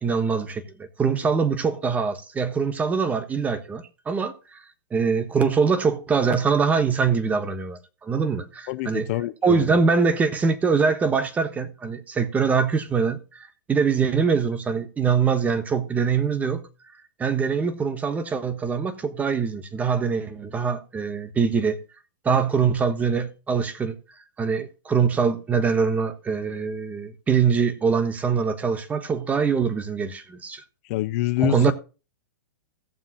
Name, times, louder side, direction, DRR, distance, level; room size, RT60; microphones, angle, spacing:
voice 1, 0.0-4.6 4.9-9.1 9.4-16.7 17.2-21.8 22.2-23.9 24.4-30.6 31.4-31.7, right 5 dB, 15° right, 1.2 m, -23 dB
voice 2, 8.7-9.8 30.9-31.7, left 17 dB, 45° left, 0.6 m, -26 dB
16.5 x 7.2 x 2.8 m
hypercardioid pair, 130°, 11 cm